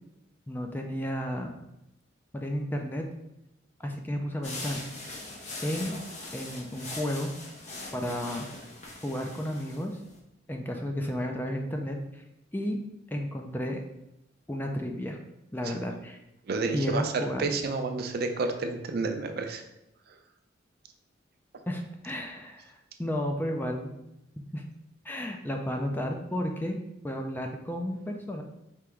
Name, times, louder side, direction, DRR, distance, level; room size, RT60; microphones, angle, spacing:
voice 1, 0.5-1.5 2.3-3.0 3.8-4.8 5.6-5.9 6.3-7.3 7.9-8.4 9.0-10.0 10.5-12.2 12.5-12.8 13.1-13.8 14.5-15.2 15.5-16.2 16.7-17.5 21.7-24.0 24.5-24.6 25.0-26.8 27.0-28.4, equal, 10° left, 3 dB, 0.4 m, -32 dB
sound 1, 4.4-10.2, left 2 dB, 35° left, 0.8 m, -41 dB
voice 2, 16.5-19.6, right 3 dB, 50° right, 5 dB, 0.4 m, -30 dB
4.5 x 2.9 x 3.5 m, 0.87 s
head